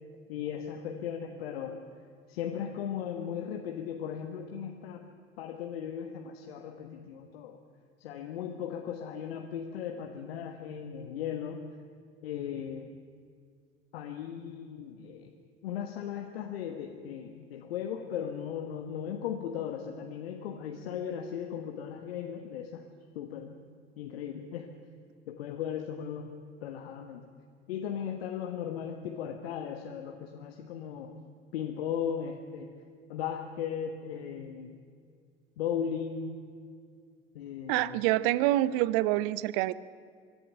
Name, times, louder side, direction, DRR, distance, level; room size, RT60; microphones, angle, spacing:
voice 1, 0.3-1.8 2.3-5.1 5.4-7.6 8.0-11.6 12.2-12.9 13.9-15.3 15.6-22.9 23.1-23.6 24.0-24.7 25.3-26.3 26.6-27.2 27.7-32.8 33.1-34.7 35.6-36.4 37.3-38.0, left 8 dB, 65° left, 4 dB, 1.4 m, -37 dB
voice 2, 37.7-39.7, right 16 dB, 50° right, 19 dB, 0.7 m, -26 dB
24.0 x 11.5 x 10.0 m, 2.2 s
figure-of-eight pair, 70°, 32 cm